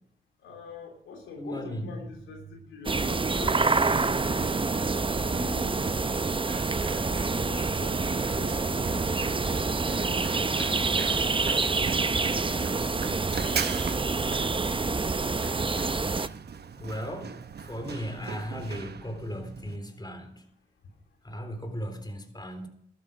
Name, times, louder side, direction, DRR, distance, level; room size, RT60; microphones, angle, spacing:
voice 1, 0.4-4.6 5.2-5.9 7.0-10.8 12.5-13.6 14.2-14.7, left 4 dB, 90° left, 3.0 m, -45 dB
voice 2, 1.4-2.0 16.8-17.4 17.6-20.4 21.2-22.7, equal, 20° left, 3.9 m, -36 dB
sound 1, 2.9-16.3, right 3 dB, 25° right, 0.8 m, -27 dB
Run, 3.7-19.8, right 6 dB, 60° right, 1.0 m, -40 dB
13.5 x 13.0 x 5.2 m
supercardioid pair, 45°, 19 cm